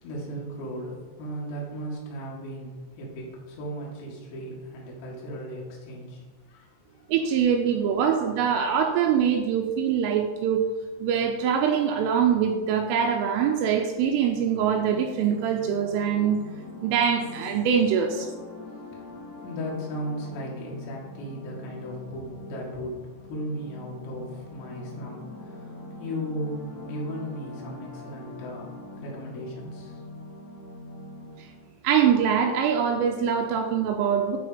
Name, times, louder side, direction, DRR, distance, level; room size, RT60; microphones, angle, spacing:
voice 1, 0.0-7.1 18.6-30.0, equal, 80° left, -4 dB, 4.5 m, -36 dB
voice 2, 7.1-10.6 11.0-16.4 16.8-18.3 31.4-31.5 31.8-34.4, right 7 dB, 80° right, 2 dB, 3.2 m, -23 dB
sound 1, 14.3-31.7, left 2 dB, 65° left, 2.1 m, -43 dB
12.0 x 4.6 x 5.1 m, 1.3 s
omnidirectional pair, 6.0 m